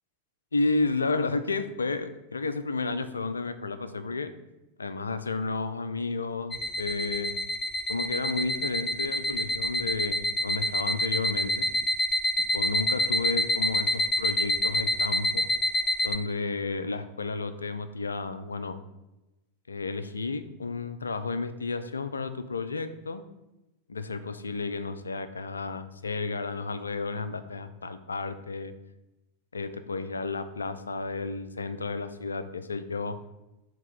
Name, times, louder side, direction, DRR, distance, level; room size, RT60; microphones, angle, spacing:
voice 1, 0.5-4.3 4.8-7.3 7.9-11.7 12.5-15.5 16.0-18.8 19.7-23.3 23.9-28.7 29.5-33.2, left 3 dB, 75° left, 12 dB, 0.4 m, -32 dB
sound 1, 6.5-16.2, left 1 dB, 25° left, 0.6 m, -27 dB
7.3 x 3.0 x 5.5 m, 0.99 s
figure-of-eight pair, 90°, 0 cm